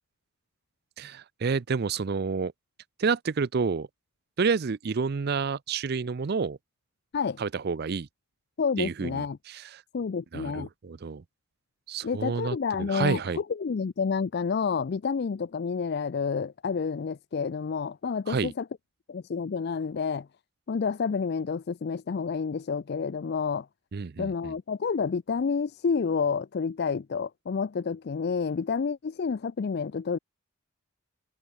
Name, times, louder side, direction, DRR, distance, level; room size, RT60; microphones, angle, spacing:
voice 1, 1.0-2.5 3.0-3.9 4.4-6.6 7.4-8.1 8.8-9.8 10.3-11.2 11.9-13.4 18.3-18.5 23.9-24.5, right 5 dB, 50° right, 0.5 m, -29 dB
voice 2, 8.6-9.4 9.9-10.7 12.0-18.7 19.1-20.3 20.7-23.7 24.2-30.2, left 5 dB, 50° left, 0.4 m, -29 dB
open air
head